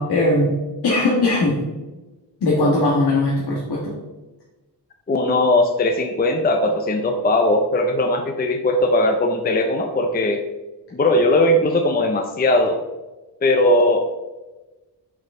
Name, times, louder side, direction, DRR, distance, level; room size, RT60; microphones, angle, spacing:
voice 1, 0.0-1.6 2.4-3.9, left 2 dB, 65° left, -5 dB, 1.6 m, -19 dB
voice 2, 5.1-10.4 10.9-12.8 13.4-14.0, left 1 dB, 20° left, 4 dB, 0.5 m, -19 dB
6.6 x 6.2 x 3.6 m, 1.1 s
wide cardioid pair, 155°, 43 cm